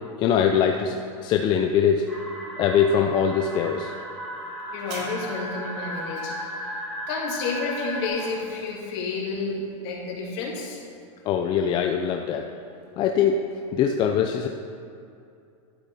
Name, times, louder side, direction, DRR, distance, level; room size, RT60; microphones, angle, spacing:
voice 1, 0.2-2.1 2.6-3.9 11.3-12.5 13.0-13.4 13.7-14.5, left 7 dB, 25° left, 4 dB, 0.4 m, -22 dB
sound 1, 2.1-8.1, equal, ahead, 2.0 m, -35 dB
voice 2, 4.7-6.7 7.1-10.8, left 4 dB, 50° left, -3 dB, 2.8 m, -31 dB
sound 2, 4.8-5.9 7.6-8.9 9.7-9.8, right 1 dB, 40° right, 2.6 m, -41 dB
11.5 x 9.2 x 4.1 m, 2.5 s
supercardioid pair, 150°, 17 cm